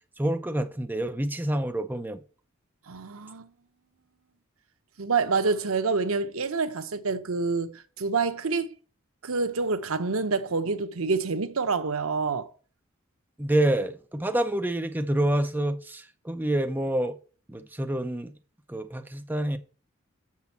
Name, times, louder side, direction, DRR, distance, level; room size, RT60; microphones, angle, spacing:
voice 1, 0.2-2.2 13.4-17.2 17.5-18.3 18.7-19.6, right 1 dB, 10° right, 0.6 m, -27 dB
voice 2, 2.9-3.5 5.0-8.7 9.2-12.5, right 4 dB, 85° right, 0.8 m, -27 dB
6.9 x 6.0 x 7.1 m
head